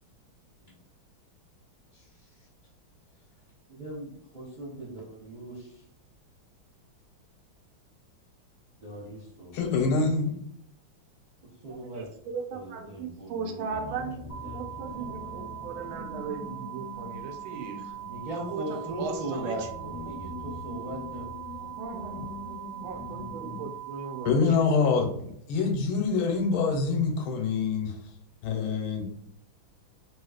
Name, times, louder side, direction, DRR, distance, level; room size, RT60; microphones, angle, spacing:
voice 1, 1.9-2.5 3.7-5.8 8.8-9.6 11.6-12.1 12.5-15.8 18.1-21.3, right 1 dB, 55° right, -6 dB, 0.5 m, -40 dB
voice 2, 9.5-10.4 24.2-27.9 28.4-29.1, left 4 dB, 85° left, 3 dB, 1.5 m, -25 dB
voice 3, 11.8-14.2 14.5-17.8 18.5-19.5 20.1-20.2 21.8-22.4 22.8-24.3, right 5 dB, 85° right, 4 dB, 1.4 m, -37 dB
sound 1, 13.7-23.7, left 2 dB, 10° left, 0.8 m, -43 dB
sound 2, 14.3-24.3, right 12 dB, 55° left, 0.7 m, -41 dB
3.4 x 2.8 x 2.3 m, 0.68 s
omnidirectional pair, 2.3 m